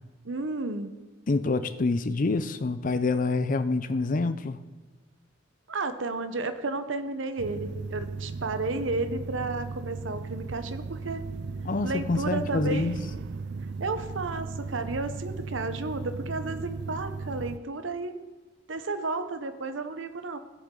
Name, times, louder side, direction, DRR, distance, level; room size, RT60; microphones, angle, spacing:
voice 1, 0.2-1.0 5.7-11.2 11.8-13.0 13.8-18.1 18.7-20.4, right 3 dB, 80° right, 0.8 m, -32 dB
voice 2, 1.3-4.6 11.6-13.0, left 3 dB, 45° left, 0.5 m, -27 dB
sound 1, 7.4-17.6, right 4 dB, 60° right, 0.3 m, -36 dB
16.5 x 7.2 x 3.8 m
head